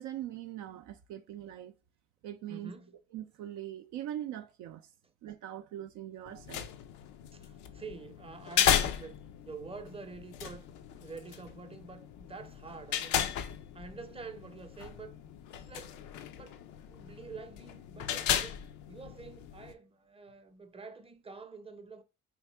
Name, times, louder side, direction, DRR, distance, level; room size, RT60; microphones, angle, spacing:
voice 1, 0.0-1.7 2.2-2.7 3.1-4.9 5.2-6.7, right 12 dB, 65° right, 0.5 m, -41 dB
voice 2, 2.5-3.0 7.3-9.2 9.4-10.7 11.0-13.2 13.7-15.2 15.5-16.0 16.3-16.6 16.9-18.6 18.9-22.0, right 4 dB, 20° right, 0.6 m, -47 dB
sound 1, 6.3-19.7, left 9 dB, 70° left, 0.5 m, -35 dB
3.4 x 2.8 x 3.3 m
hypercardioid pair, 50°, 32 cm